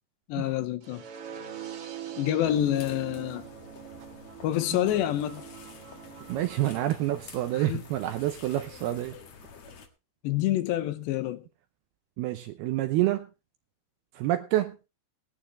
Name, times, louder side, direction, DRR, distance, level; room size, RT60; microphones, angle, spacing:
voice 1, 0.3-1.0 2.2-3.5 4.4-5.4 7.5-7.8 10.2-11.4, left 12 dB, 75° left, 3.0 m, -27 dB
sound 1, 0.8-6.8, right 9 dB, 55° right, 3.2 m, -43 dB
sound 2, 2.4-9.9, left 5 dB, 50° left, 2.2 m, -49 dB
voice 2, 6.3-9.1 12.2-13.3 14.2-14.8, right 14 dB, 80° right, 2.3 m, -28 dB
18.5 x 11.5 x 3.1 m
omnidirectional pair, 5.3 m